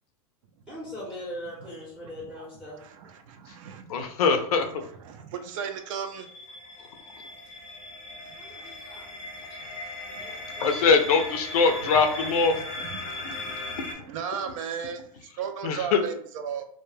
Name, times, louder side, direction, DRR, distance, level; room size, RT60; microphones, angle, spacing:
voice 1, 0.7-2.8 8.4-9.1 10.2-10.8, left 1 dB, 5° right, -5 dB, 0.7 m, -40 dB
voice 2, 2.8-4.1 5.1-6.3 8.2-8.8 9.6-10.6 12.9-16.6, right 7 dB, 60° right, 7 dB, 0.5 m, -37 dB
voice 3, 3.9-4.8 6.8-6.9 10.3-12.8 13.2-14.0 15.6-16.0, left 5 dB, 75° left, 6 dB, 0.5 m, -24 dB
sound 1, 5.8-13.9, left 2 dB, 30° left, 0.5 m, -38 dB
2.2 x 2.2 x 3.1 m, 0.65 s
supercardioid pair, 145°, 19 cm